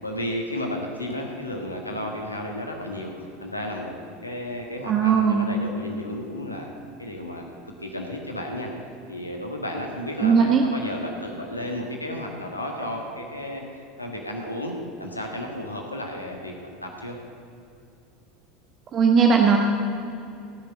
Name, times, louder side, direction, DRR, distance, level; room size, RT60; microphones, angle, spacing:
voice 1, 0.0-4.0 4.2-6.7 7.0-7.4 7.8-8.7 9.1-17.2, left 1 dB, 85° left, 1 dB, 1.6 m, -33 dB
voice 2, 4.9-5.5 10.2-10.6 18.9-19.6, right 6 dB, 35° right, 2 dB, 1.3 m, -18 dB
17.0 x 6.7 x 9.1 m, 2.6 s
figure-of-eight pair, 75°, 0 cm